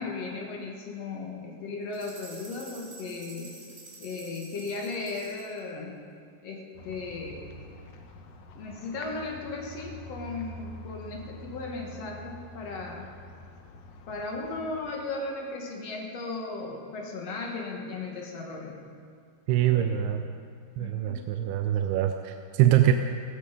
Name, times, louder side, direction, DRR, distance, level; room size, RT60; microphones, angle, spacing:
voice 1, 0.0-3.5 4.0-6.0 6.4-7.4 8.6-13.1 14.1-18.8 19.7-20.1 20.8-21.2, left 3 dB, 50° left, 0 dB, 2.3 m, -36 dB
sound 1, 1.9-5.6, right 2 dB, 15° right, 3.4 m, -48 dB
sound 2, 6.8-14.9, left 2 dB, 80° left, 1.4 m, -46 dB
voice 2, 19.5-20.2 20.8-22.9, right 12 dB, 80° right, 6 dB, 2.5 m, -24 dB
16.0 x 16.0 x 5.2 m, 2.2 s
omnidirectional pair, 4.7 m